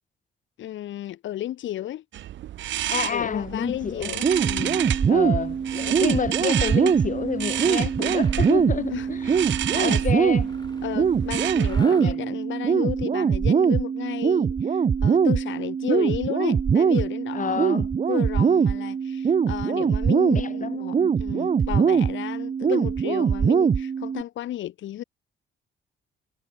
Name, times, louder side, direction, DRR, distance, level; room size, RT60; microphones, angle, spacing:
voice 1, 0.6-2.0 3.1-4.8 5.8-6.0 8.9-9.1 9.4-10.0 10.8-25.0, left 13 dB, 75° left, 1.3 m, -33 dB
sound 1, 2.1-11.9, right 12 dB, 70° right, 1.0 m, -32 dB
voice 2, 2.9-4.1 5.1-10.5 11.8-12.4 17.3-17.9 20.3-21.1, left 6 dB, 40° left, 2.2 m, -30 dB
sound 2, 4.2-24.2, right 6 dB, 35° right, 0.8 m, -22 dB
Mechanisms, 7.9-8.6 9.1-11.0 11.6-12.4, left 3 dB, 20° left, 4.9 m, -48 dB
cardioid pair, 90°, 20 cm